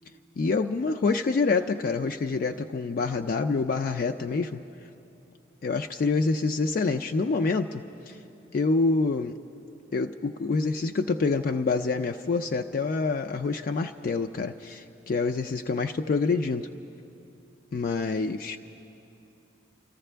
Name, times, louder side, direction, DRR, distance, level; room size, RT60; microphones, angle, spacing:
voice 1, 0.4-4.6 5.6-8.2 8.5-9.4 9.9-16.7 17.7-18.6, left 4 dB, 45° left, 6 dB, 0.3 m, -27 dB
27.5 x 14.0 x 3.4 m, 2.8 s
head